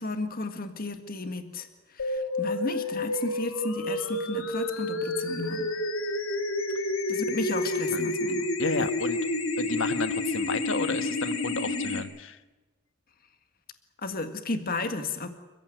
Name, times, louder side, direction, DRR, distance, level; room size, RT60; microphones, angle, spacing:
voice 1, 0.0-5.7 7.1-8.5 8.8-8.9 14.0-15.3, left 3 dB, 45° left, 7 dB, 1.8 m, -33 dB
sound 1, 2.0-12.0, left 2 dB, 90° left, 3.3 m, -29 dB
voice 2, 8.6-9.2 9.6-12.4, left 3 dB, 65° left, 11 dB, 1.4 m, -32 dB
28.5 x 15.5 x 9.3 m, 1.2 s
head